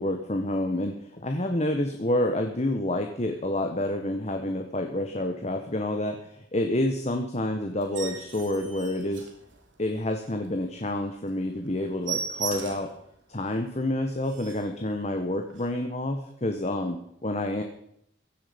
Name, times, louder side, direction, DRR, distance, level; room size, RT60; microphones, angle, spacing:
voice 1, 0.0-9.3 9.8-12.9 13.3-17.6, left 1 dB, 35° left, 5 dB, 1.4 m, -28 dB
sound 1, 7.8-9.9 10.4-10.5 10.9-11.0 11.3-11.4 11.7-13.0 13.5-13.6 13.9-14.0 14.2-14.8 15.5-15.7, right 6 dB, 85° right, 3.1 m, -37 dB
16.0 x 11.0 x 5.3 m, 0.73 s
head